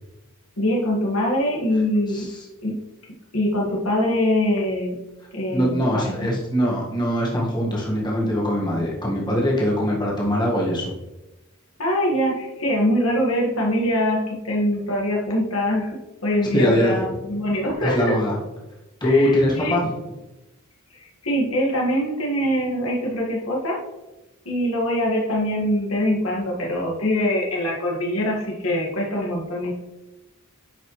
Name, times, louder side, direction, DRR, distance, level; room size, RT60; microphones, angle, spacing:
voice 1, 0.6-2.2 2.6-2.8 3.3-5.0 5.3-6.3 11.8-18.2 19.0-19.8 20.9-23.8 24.5-29.7, left 1 dB, 80° left, -2 dB, 1.9 m, -23 dB
voice 2, 2.1-2.4 5.5-11.0 16.5-17.1 17.8-18.3 19.0-19.9, equal, 20° left, -4 dB, 1.7 m, -22 dB
10.5 x 5.4 x 3.2 m, 1.0 s
head